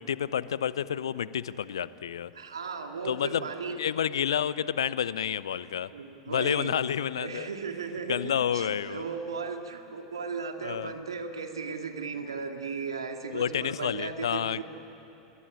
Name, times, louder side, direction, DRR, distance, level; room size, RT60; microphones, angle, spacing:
voice 1, 0.0-2.3 3.0-5.9 6.3-7.5 8.1-9.0 10.6-10.9 13.3-14.6, left 9 dB, 65° left, 18 dB, 0.7 m, -30 dB
voice 2, 2.3-3.8 5.9-6.7 7.2-8.2 8.5-14.6, right 5 dB, 75° right, 5 dB, 2.2 m, -36 dB
26.5 x 22.5 x 10.0 m, 2.9 s
figure-of-eight pair, 85°, 3 cm